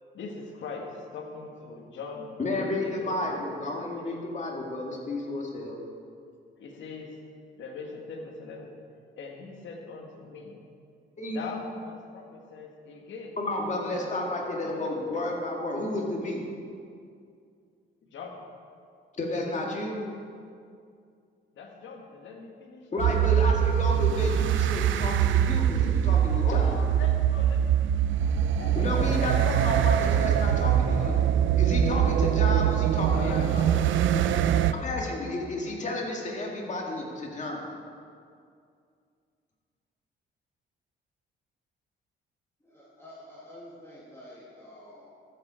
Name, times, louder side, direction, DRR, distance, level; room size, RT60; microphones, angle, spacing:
voice 1, 0.1-4.1 6.6-7.2 7.6-8.8 9.2-10.6 11.3-13.4 14.4-15.0 18.1-18.4 21.5-23.2 26.3-28.8 29.1-29.3 30.9-31.5 33.1-33.9 34.3-35.7, left 4 dB, 70° left, 1 dB, 1.6 m, -42 dB
voice 2, 2.4-5.8 11.2-11.4 13.4-16.4 19.1-20.1 22.9-26.7 28.8-31.2 31.6-33.7 34.7-37.7, left 1 dB, 35° left, -1 dB, 2.3 m, -31 dB
sound 1, 23.0-34.7, right 9 dB, 75° right, 0.5 m, -23 dB
voice 3, 42.6-45.1, left 1 dB, 15° left, -7 dB, 2.6 m, -48 dB
13.5 x 7.5 x 4.4 m, 2.3 s
cardioid pair, 90°, 20 cm